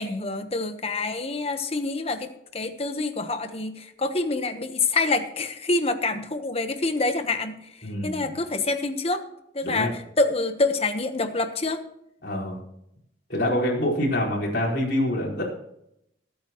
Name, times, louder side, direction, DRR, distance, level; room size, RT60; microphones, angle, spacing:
voice 1, 0.0-7.6 8.0-9.2 9.5-11.8, left 3 dB, 30° left, 8 dB, 1.2 m, -26 dB
voice 2, 7.8-8.4 9.6-9.9 12.2-12.6 13.3-15.4, left 1 dB, 60° left, -5 dB, 4.9 m, -26 dB
22.0 x 9.1 x 3.1 m, 0.79 s
head